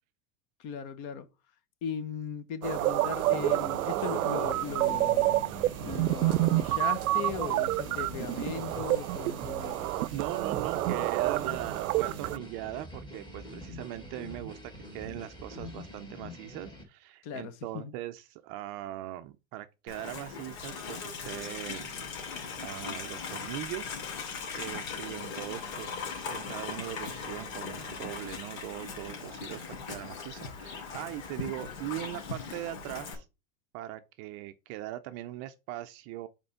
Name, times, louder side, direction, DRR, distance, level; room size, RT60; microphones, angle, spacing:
voice 1, 0.6-1.3 1.8-5.4 5.8-9.9 17.2-17.9, left 7 dB, 45° left, 1.1 m, -38 dB
sound 1, 2.6-12.4, right 17 dB, 80° right, 0.6 m, -28 dB
sound 2, 3.1-16.8, equal, 10° left, 1.8 m, -45 dB
voice 2, 10.1-21.9 22.6-24.0 24.5-33.3 33.7-36.3, right 14 dB, 35° right, 0.5 m, -40 dB
Livestock farm animals working animals, 19.9-33.1, left 5 dB, 70° left, 2.6 m, -39 dB
5.3 x 4.4 x 5.5 m
supercardioid pair, 145°, 43 cm